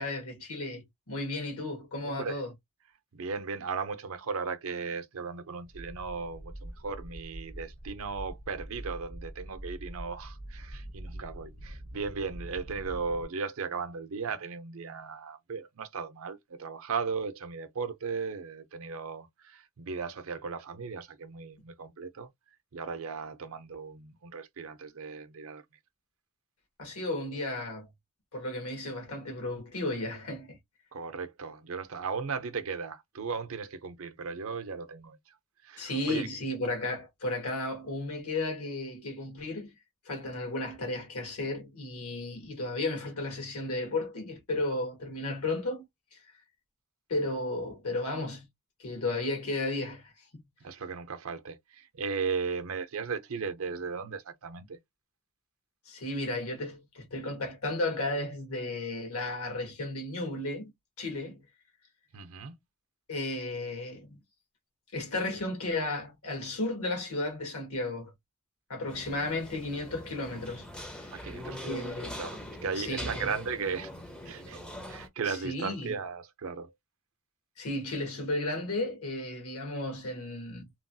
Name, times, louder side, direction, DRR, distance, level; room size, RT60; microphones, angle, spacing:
voice 1, 0.0-2.5 26.8-27.9 28.3-30.6 35.8-39.7 40.0-45.8 47.1-48.5 48.8-50.4 55.9-60.7 61.0-61.4 63.1-64.2 64.9-68.1 68.7-70.7 71.7-72.2 72.8-73.3 75.2-76.0 77.6-80.7, left 2 dB, 75° left, 1.3 m, -34 dB
voice 2, 2.0-2.4 3.1-22.3 22.7-25.6 30.9-35.3 35.6-36.3 50.6-54.8 62.1-62.5 71.1-71.9 72.2-73.9 74.2-74.6 74.9-76.7, right 5 dB, 65° right, 0.5 m, -36 dB
sound 1, 5.6-13.3, right 1 dB, 55° left, 1.0 m, -44 dB
sound 2, 68.9-75.1, left 1 dB, 5° left, 0.5 m, -42 dB
3.0 x 2.3 x 2.6 m
head